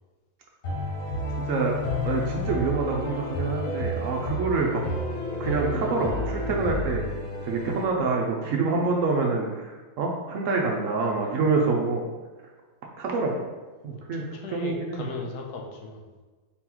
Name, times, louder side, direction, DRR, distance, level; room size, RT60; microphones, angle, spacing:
sound 1, 0.6-7.8, left 1 dB, 50° left, 1.0 m, -30 dB
voice 1, 1.4-1.8 2.0-4.8 5.4-7.0 7.4-12.0 13.0-13.4 13.8-14.2 14.5-15.1, right 4 dB, 70° right, 0 dB, 0.8 m, -26 dB
voice 2, 13.9-16.2, left 4 dB, 80° left, 1 dB, 1.2 m, -38 dB
4.2 x 3.7 x 2.9 m, 1.3 s
omnidirectional pair, 1.7 m